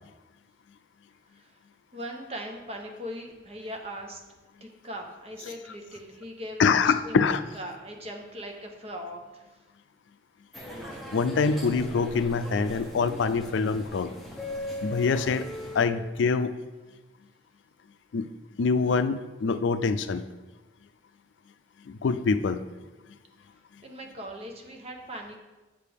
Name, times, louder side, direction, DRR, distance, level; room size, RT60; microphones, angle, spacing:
voice 1, 1.9-4.2 4.6-7.2 7.5-9.6 23.8-25.4, equal, 35° right, 2 dB, 0.9 m, -40 dB
voice 2, 6.6-7.4 11.1-14.1 14.8-15.5 15.7-16.5 18.1-18.3 18.6-20.2 21.9-22.6, left 5 dB, 85° left, 11 dB, 0.4 m, -25 dB
sound 1, 10.5-15.9, left 1 dB, ahead, 0.9 m, -39 dB
7.4 x 6.7 x 3.5 m, 1.2 s
head